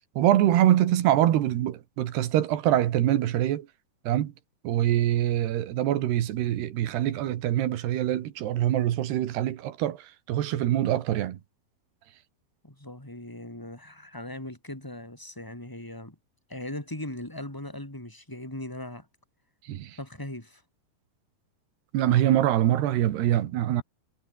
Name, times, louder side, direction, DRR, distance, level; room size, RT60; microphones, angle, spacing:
voice 1, 0.2-3.7 4.1-4.3 4.6-11.4 19.7-20.0 21.9-23.8, right 12 dB, 80° right, 3.7 m, -24 dB
voice 2, 12.6-16.2 16.5-19.1 20.0-20.6, left 1 dB, 5° left, 3.7 m, -39 dB
omnidirectional pair, 4.7 m